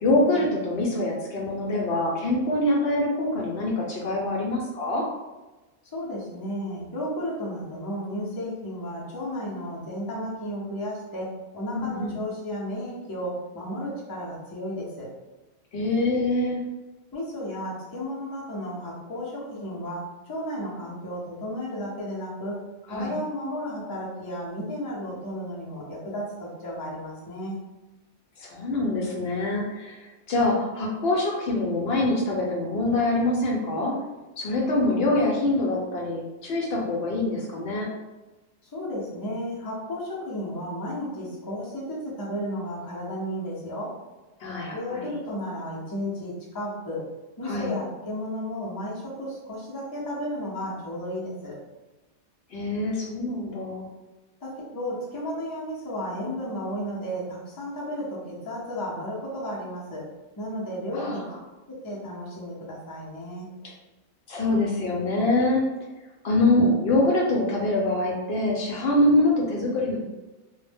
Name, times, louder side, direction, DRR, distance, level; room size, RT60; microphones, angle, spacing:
voice 1, 0.0-5.0 11.7-12.2 15.7-16.6 22.9-23.1 28.4-33.9 34.4-37.9 44.4-45.0 47.4-47.7 52.5-53.9 60.9-61.2 64.3-65.6 66.2-70.0, left 2 dB, 65° left, -3 dB, 0.7 m, -24 dB
voice 2, 5.9-11.3 11.5-15.1 17.1-22.6 22.8-27.6 38.6-43.9 44.7-47.0 47.4-51.6 54.4-60.1 60.4-61.2 61.7-63.5, equal, 30° left, -5 dB, 0.4 m, -33 dB
2.1 x 2.1 x 3.3 m, 1.1 s
omnidirectional pair, 1.2 m